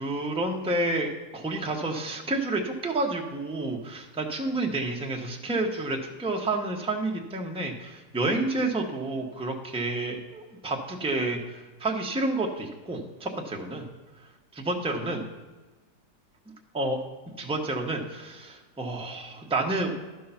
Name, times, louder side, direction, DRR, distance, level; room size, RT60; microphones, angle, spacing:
voice 1, 0.0-13.9 14.5-15.2 16.7-17.0 17.4-19.9, right 2 dB, 5° right, 1 dB, 0.5 m, -30 dB
11.5 x 4.6 x 5.7 m, 1.2 s
omnidirectional pair, 1.8 m